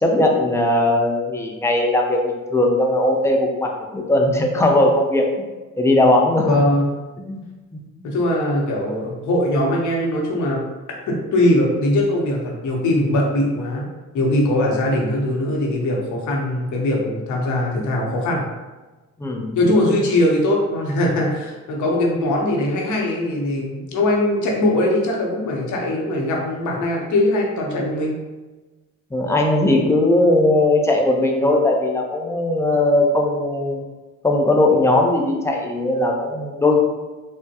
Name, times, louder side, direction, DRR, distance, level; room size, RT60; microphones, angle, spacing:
voice 1, 0.0-5.3 5.8-6.6 7.3-7.4 8.0-8.1 19.2-19.7 29.1-33.8 34.2-36.8, left 1 dB, 10° left, 0 dB, 0.5 m, -18 dB
voice 2, 6.4-6.9 8.0-10.6 11.0-13.9 14.1-18.4 19.6-28.1, left 1 dB, 75° left, -1 dB, 0.8 m, -21 dB
3.4 x 2.1 x 2.8 m, 1.2 s
cardioid pair, 90°, 30 cm